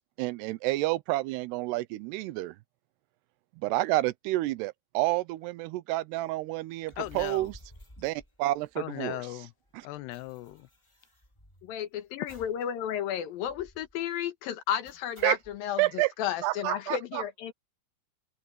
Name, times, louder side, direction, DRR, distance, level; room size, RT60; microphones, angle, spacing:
voice 1, 0.0-2.6 3.6-7.6 8.0-9.2 9.7-9.9 15.2-15.4 15.8-16.1 16.4-17.2, right 18 dB, 90° right, 2.8 m, -29 dB
sound 1, 6.8-9.1 9.4-9.5 9.7-11.8 12.3-12.7 13.0-13.1 13.4-13.9 14.8-15.6, left 1 dB, 10° left, 2.8 m, -54 dB
voice 2, 7.0-7.5 8.8-9.5 9.8-10.7, left 17 dB, 85° left, 2.9 m, -38 dB
voice 3, 11.6-17.5, left 10 dB, 70° left, 2.8 m, -33 dB
omnidirectional pair, 4.7 m